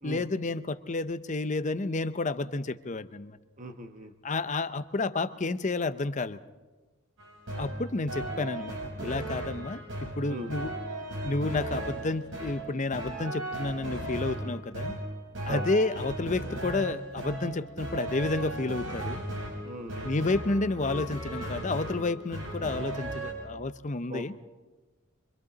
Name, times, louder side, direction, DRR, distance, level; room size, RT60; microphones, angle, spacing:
voice 1, 0.0-3.4 4.2-6.4 7.6-9.8 10.2-10.7 11.2-14.9 15.4-19.2 20.0-24.3, left 3 dB, 35° left, 12 dB, 0.7 m, -30 dB
voice 2, 3.6-4.1 10.3-10.5 15.5-15.7 19.6-20.1 24.1-24.2, right 1 dB, 35° right, 5 dB, 1.1 m, -38 dB
sound 1, 7.2-23.3, right 1 dB, 70° right, 6.4 m, -36 dB
26.5 x 24.5 x 4.0 m, 1.2 s
head